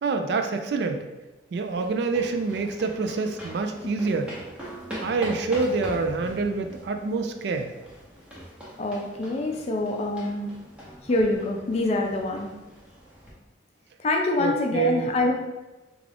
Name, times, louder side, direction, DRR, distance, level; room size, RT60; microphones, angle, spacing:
voice 1, 0.0-1.1 1.5-4.3 5.0-7.7 14.4-15.1, right 4 dB, 60° right, 6 dB, 0.3 m, -26 dB
sound 1, 1.5-13.3, equal, 5° right, 0.7 m, -42 dB
voice 2, 8.8-10.5 11.0-12.5 14.0-15.3, left 2 dB, 35° left, 2 dB, 0.4 m, -25 dB
3.6 x 2.3 x 3.3 m, 1.1 s
head